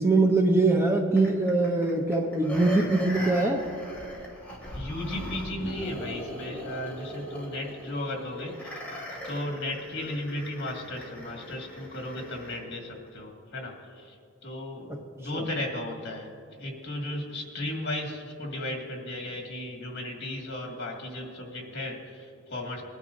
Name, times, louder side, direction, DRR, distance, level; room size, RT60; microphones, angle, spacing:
voice 1, 0.0-3.7 14.9-15.0 15.3-15.4, right 2 dB, 10° right, 3 dB, 0.6 m, -23 dB
sound 1, 1.2-12.6 13.1-13.2, equal, 5° left, 2.3 m, -39 dB
voice 2, 4.7-16.3 16.6-22.8, left 1 dB, 55° left, 0 dB, 1.9 m, -35 dB
20.0 x 10.0 x 2.6 m, 2.4 s
head